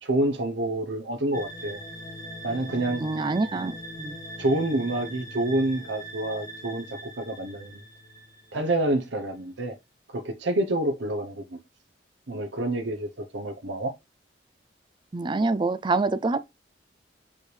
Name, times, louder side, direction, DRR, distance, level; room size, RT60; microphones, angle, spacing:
voice 1, 0.0-1.8 2.4-3.0 4.4-7.8 8.5-9.7 10.1-11.6 12.3-13.9, right 1 dB, 90° right, 0.9 m, -28 dB
sound 1, 1.3-8.9, equal, 20° left, 2.5 m, -41 dB
voice 2, 3.0-4.1 15.1-16.4, right 3 dB, 25° right, 0.4 m, -26 dB
6.3 x 5.5 x 3.3 m
head